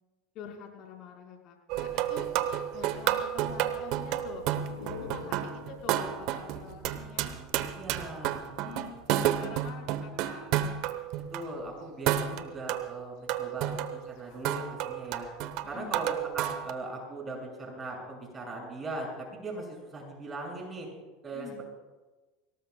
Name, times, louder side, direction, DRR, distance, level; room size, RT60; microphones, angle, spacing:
voice 1, 0.3-2.3 2.7-4.4 4.8-7.4 8.4-10.5 15.7-16.0 21.3-21.6, left 6 dB, 55° left, 1 dB, 4.6 m, -46 dB
sound 1, 1.7-11.5 12.1-16.7, right 11 dB, 60° right, 1.0 m, -31 dB
sound 2, 4.2-7.7, left 4 dB, 85° left, 3.6 m, -46 dB
voice 2, 7.7-8.6 11.3-15.3 15.7-20.9 21.2-21.5, right 2 dB, 25° right, -1 dB, 6.7 m, -40 dB
24.5 x 18.5 x 2.3 m, 1.2 s
hypercardioid pair, 90°, 0 cm